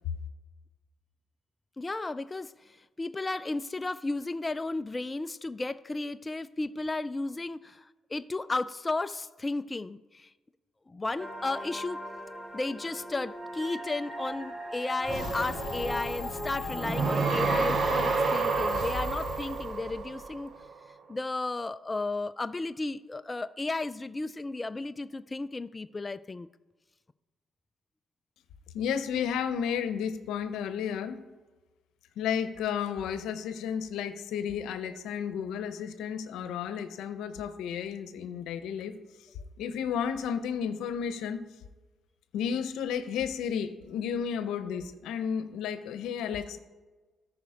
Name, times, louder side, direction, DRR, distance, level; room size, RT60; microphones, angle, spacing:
voice 1, 1.8-10.3 10.9-12.1 12.5-20.5 21.1-26.5, left 2 dB, 20° left, 12 dB, 0.3 m, -34 dB
sound 1, 11.2-18.8, right 1 dB, 20° right, 1.1 m, -39 dB
sound 2, 15.0-20.5, left 6 dB, 55° left, 0.7 m, -40 dB
sound 3, 15.1-20.7, right 4 dB, 50° right, 0.9 m, -30 dB
voice 2, 28.7-31.2 32.2-39.0 39.6-41.4 42.3-46.6, left 7 dB, 85° left, 10 dB, 0.8 m, -32 dB
13.5 x 5.0 x 5.0 m, 1.3 s
cardioid pair, 90°, 0 cm